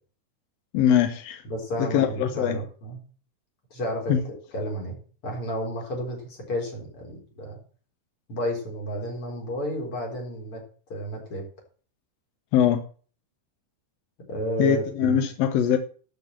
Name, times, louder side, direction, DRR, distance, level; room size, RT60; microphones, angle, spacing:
voice 1, 0.7-1.4 1.8-2.6 4.1-4.2 12.5-12.8 14.6-15.8, left 9 dB, 70° left, 1.6 m, -22 dB
voice 2, 1.5-3.0 3.7-4.2 4.5-5.0 5.2-7.6 8.3-10.6 10.9-11.4 14.3-15.2, equal, 40° left, 4.9 m, -31 dB
12.0 x 6.2 x 7.5 m
omnidirectional pair, 3.7 m